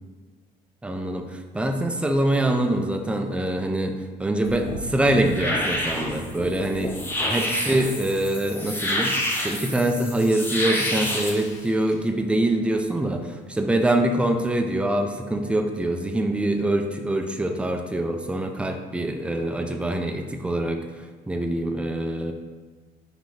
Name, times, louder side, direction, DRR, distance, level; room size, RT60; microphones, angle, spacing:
voice 1, 0.8-6.9 7.2-20.8 21.3-22.3, right 1 dB, 5° right, 6 dB, 0.3 m, -24 dB
sound 1, 4.4-11.3, left 1 dB, 10° left, 0.8 m, -28 dB
Water / Splash splatter, 10.6-12.5 12.8-13.0 13.6-13.8 14.3-14.4, left 3 dB, 45° left, 0.7 m, -44 dB
5.4 x 2.9 x 3.1 m, 1.4 s
cardioid pair, 110°, 17 cm